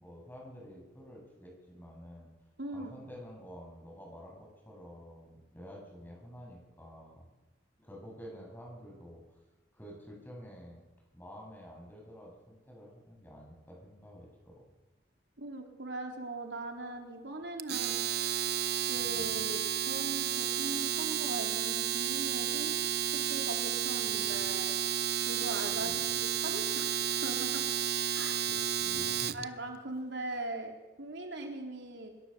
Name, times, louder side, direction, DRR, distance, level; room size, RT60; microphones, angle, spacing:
voice 1, 0.0-2.3 2.7-7.2 7.8-9.4 9.7-10.8 11.1-14.7 19.0-19.4 24.1-24.4 25.7-26.0 28.5-29.5, equal, 10° left, -1 dB, 7.8 m, -49 dB
voice 2, 2.6-2.9 15.4-18.0 18.9-22.7 23.1-24.8 25.2-26.9 27.2-27.6 28.1-28.3 29.3-32.1, right 2 dB, 80° right, 2 dB, 3.8 m, -40 dB
Domestic sounds home sounds, 17.6-29.4, right 10 dB, 60° right, 0.8 m, -32 dB
25.0 x 22.0 x 6.9 m, 1.1 s
head